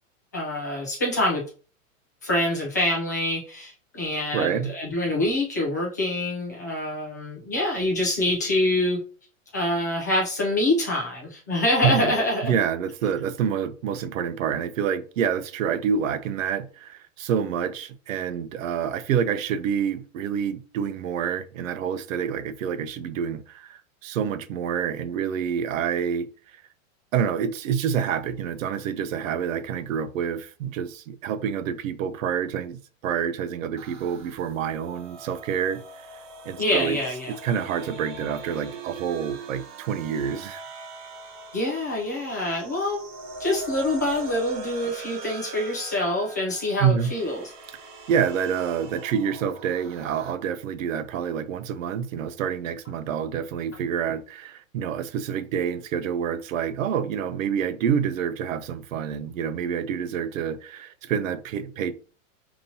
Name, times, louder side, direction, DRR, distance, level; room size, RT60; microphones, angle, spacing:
voice 1, 0.3-1.4 2.2-9.0 9.5-12.5 36.6-37.3 41.5-43.0 43.4-47.5, left 1 dB, 15° left, 0.3 m, -25 dB
voice 2, 4.3-4.7 11.8-12.1 12.4-26.3 27.1-35.8 36.4-37.0 37.4-40.6 46.8-47.1 48.1-61.9, right 8 dB, 75° right, 0.7 m, -27 dB
sound 1, 33.8-50.3, right 3 dB, 35° right, 0.7 m, -41 dB
5.3 x 2.9 x 2.7 m
supercardioid pair, 175°, 40 cm